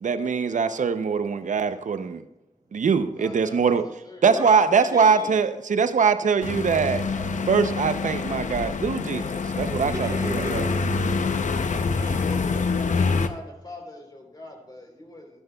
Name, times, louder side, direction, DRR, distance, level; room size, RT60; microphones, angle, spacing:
voice 1, 0.0-2.2 2.7-3.8 4.2-7.1 7.5-10.6, right 5 dB, 75° right, 0.6 m, -22 dB
voice 2, 3.1-4.3 11.7-15.4, left 1 dB, 30° left, 3.6 m, -43 dB
voice 3, 4.2-5.4 9.1-12.4 15.0-15.1, right 2 dB, 30° right, 2.7 m, -39 dB
sound 1, 6.4-13.3, left 4 dB, 70° left, 0.7 m, -26 dB
14.0 x 12.5 x 2.3 m
cardioid pair, 60°, 13 cm